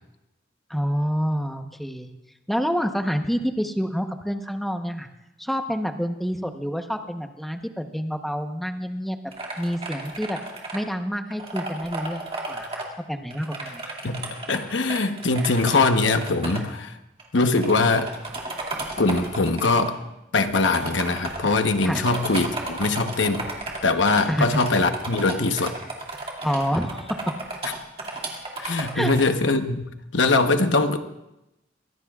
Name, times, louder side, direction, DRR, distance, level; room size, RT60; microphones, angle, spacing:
voice 1, 0.7-2.1 2.5-5.1 5.4-9.2 9.6-10.4 10.7-13.8 21.8-22.0 24.3-24.4 26.4-27.2 28.9-29.1, equal, ahead, 5 dB, 0.9 m, -27 dB
sound 1, 9.3-10.8 11.3-12.8 13.3-16.6 17.2-17.3 17.5-19.9 20.6-29.2, right 2 dB, 35° right, 2.3 m, -34 dB
voice 2, 14.0-17.0 17.3-18.1 19.0-19.9 20.3-23.5 23.8-25.7 28.6-29.8 30.1-31.0, left 3 dB, 75° left, 8 dB, 1.0 m, -22 dB
23.5 x 17.0 x 2.4 m, 0.92 s
head